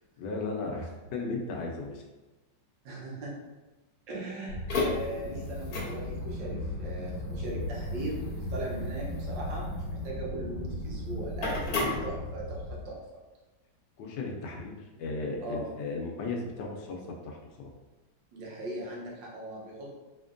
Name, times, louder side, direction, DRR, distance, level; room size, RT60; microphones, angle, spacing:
voice 1, 0.2-2.0 14.0-17.7, left 3 dB, 75° left, 1 dB, 1.2 m, -36 dB
voice 2, 2.8-3.3 4.1-13.0 15.4-15.7 18.3-19.9, right 2 dB, 85° right, -3 dB, 1.6 m, -39 dB
sound 1, 4.5-12.7, left 2 dB, 60° left, 1.1 m, -34 dB
4.3 x 2.9 x 2.5 m, 1.1 s
omnidirectional pair, 1.9 m